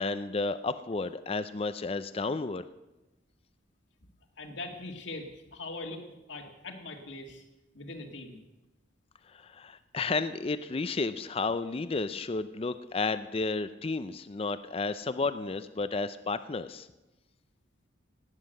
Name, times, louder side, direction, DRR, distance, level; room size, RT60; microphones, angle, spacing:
voice 1, 0.0-2.6 9.3-16.9, left 3 dB, 30° left, 12 dB, 0.4 m, -32 dB
voice 2, 4.4-6.0 6.3-7.4 7.7-8.4, left 2 dB, 70° left, 4 dB, 1.9 m, -41 dB
18.0 x 9.6 x 6.5 m, 1.0 s
head